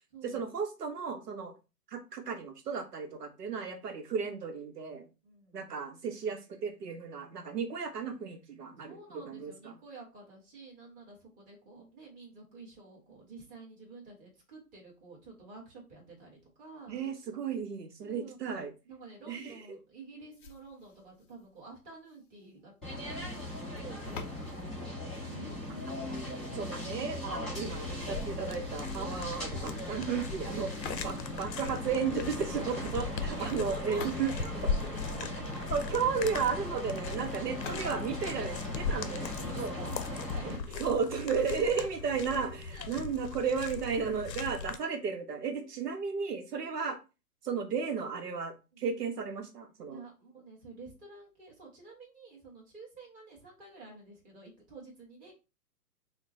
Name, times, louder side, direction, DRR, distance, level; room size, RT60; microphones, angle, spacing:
voice 1, 0.2-1.5 1.9-5.1 5.5-9.0 9.3-9.7 16.9-18.7 19.3-19.8 26.5-34.3 35.7-39.2 39.6-39.8 40.8-47.0 47.4-50.0, right 6 dB, 75° right, 6 dB, 0.9 m, -34 dB
voice 2, 5.2-5.6 8.8-17.0 18.0-25.6 31.1-31.3 33.3-35.5 37.6-38.3 39.4-40.8 41.7-41.9 42.7-43.0 48.7-48.8 49.9-55.3, right 3 dB, 15° right, -3 dB, 1.3 m, -49 dB
sound 1, 20.3-26.3 30.7-31.5 33.6-35.5 37.5-39.5, left 5 dB, 35° left, 0.6 m, -50 dB
sound 2, 22.8-40.6, left 1 dB, ahead, 1.4 m, -39 dB
sound 3, 27.6-44.8, left 5 dB, 85° left, 0.7 m, -39 dB
5.9 x 2.2 x 2.6 m, 0.29 s
hypercardioid pair, 135°, 49 cm